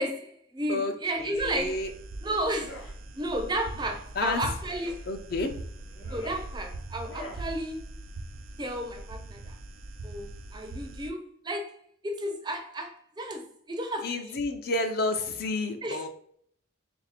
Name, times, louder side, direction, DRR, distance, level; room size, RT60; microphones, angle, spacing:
voice 1, 0.0-1.9 2.2-2.9 3.2-5.1 6.1-8.1 8.6-9.6 10.0-14.4 15.8-16.0, right 1 dB, 20° right, 0.4 m, -33 dB
voice 2, 1.2-1.9 4.2-4.5 5.1-5.5 14.0-16.1, left 2 dB, 50° left, 0.5 m, -30 dB
sound 1, 1.3-11.1, right 2 dB, 85° right, 0.5 m, -42 dB
sound 2, 2.5-2.9 3.7-4.0 4.8-5.1 5.9-6.5 7.0-7.5, left 1 dB, 65° left, 0.9 m, -44 dB
3.4 x 2.7 x 4.1 m
head